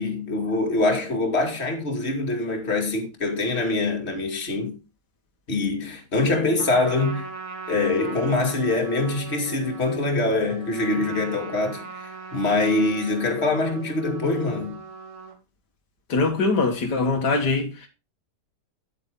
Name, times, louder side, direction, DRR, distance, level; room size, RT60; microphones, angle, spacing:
voice 1, 0.0-4.8 5.5-7.3 7.7-14.8, left 2 dB, 40° left, 2.5 m, -24 dB
Trumpet, 6.6-15.4, right 4 dB, 65° right, 2.6 m, -39 dB
voice 2, 16.1-17.9, left 3 dB, 80° left, 2.1 m, -22 dB
9.8 x 8.2 x 3.7 m
omnidirectional pair, 1.8 m